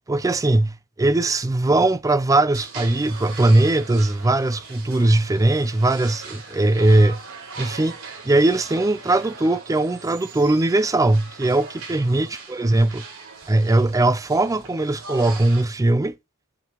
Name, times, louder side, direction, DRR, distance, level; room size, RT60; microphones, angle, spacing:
voice 1, 0.1-7.2 7.6-8.0 8.2-13.0 13.5-16.1, right 2 dB, 15° right, 0.4 m, -20 dB
sound 1, 2.5-15.6, right 4 dB, 70° right, 5.0 m, -40 dB
8.6 x 7.4 x 3.0 m
head